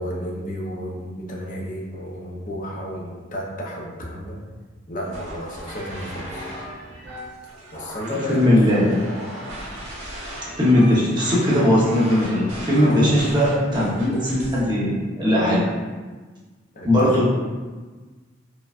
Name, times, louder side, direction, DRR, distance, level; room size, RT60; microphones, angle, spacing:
voice 1, 0.0-4.4 4.9-6.5 7.7-9.1 12.8-13.1 16.7-16.9, equal, 45° left, -2 dB, 0.6 m, -32 dB
sound 1, 5.0-14.6, equal, 70° right, 1.4 m, -37 dB
voice 2, 8.3-9.0 10.6-15.7 16.8-17.3, left 1 dB, 25° right, -7 dB, 0.9 m, -19 dB
4.6 x 2.3 x 2.4 m, 1.3 s
head